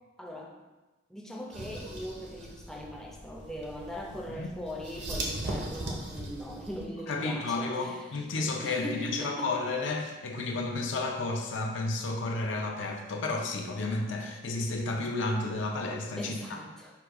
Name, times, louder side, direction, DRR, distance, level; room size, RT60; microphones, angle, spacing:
voice 1, 0.2-0.5 1.1-8.1 8.6-9.5 16.2-16.9, equal, ahead, -2 dB, 0.5 m, -40 dB
sound 1, 1.5-6.9, right 1 dB, 55° right, 0.7 m, -39 dB
voice 2, 7.1-16.6, left 3 dB, 60° left, 2 dB, 0.5 m, -32 dB
4.8 x 2.3 x 4.7 m, 1.2 s
head